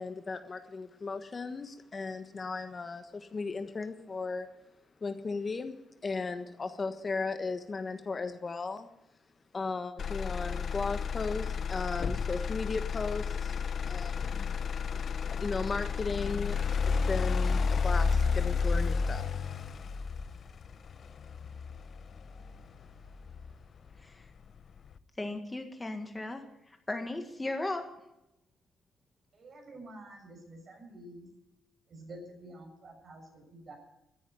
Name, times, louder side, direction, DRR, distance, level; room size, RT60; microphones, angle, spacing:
voice 1, 0.0-4.5 5.0-8.9 9.5-13.6 13.9-14.5 15.4-16.6 16.9-19.2, left 4 dB, 35° left, 8 dB, 1.4 m, -36 dB
Motor vehicle (road), 10.0-24.0 24.5-25.0, left 5 dB, 50° left, 0.8 m, -32 dB
voice 2, 25.2-26.4 26.9-27.9, left 2 dB, 15° left, 6 dB, 1.8 m, -36 dB
voice 3, 29.3-31.3 31.9-33.7, right 1 dB, 45° right, 2 dB, 7.0 m, -49 dB
14.0 x 10.0 x 9.1 m, 0.89 s
cardioid pair, 90°, 0 cm